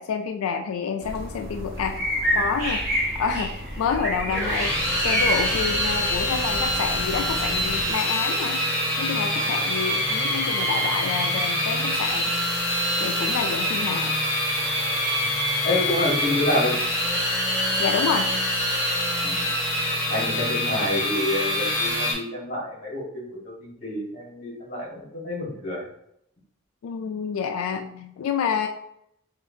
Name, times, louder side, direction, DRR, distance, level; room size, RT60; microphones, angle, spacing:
voice 1, 0.0-2.0 2.3-2.8 3.2-4.7 5.0-8.6 9.0-12.3 13.0-14.2 17.8-18.3 26.8-28.7, left 6 dB, 90° left, 5 dB, 0.3 m, -28 dB
sound 1, 1.0-7.9, equal, 45° right, 1.0 m, -28 dB
sound 2, 4.3-22.1, left 1 dB, 15° right, 1.4 m, -25 dB
voice 2, 15.6-16.8 19.2-19.5 20.1-25.8, left 1 dB, 35° left, -3 dB, 1.3 m, -28 dB
5.5 x 2.5 x 2.7 m, 0.75 s
head